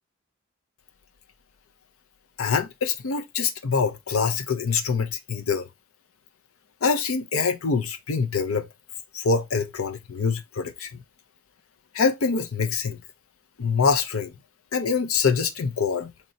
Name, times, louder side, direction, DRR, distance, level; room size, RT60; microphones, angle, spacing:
voice 1, 2.4-5.7 6.8-8.7 9.1-10.9 11.9-13.0 13.6-14.3 14.7-16.1, left 5 dB, 90° left, 0.6 m, -25 dB
4.3 x 3.0 x 2.6 m
head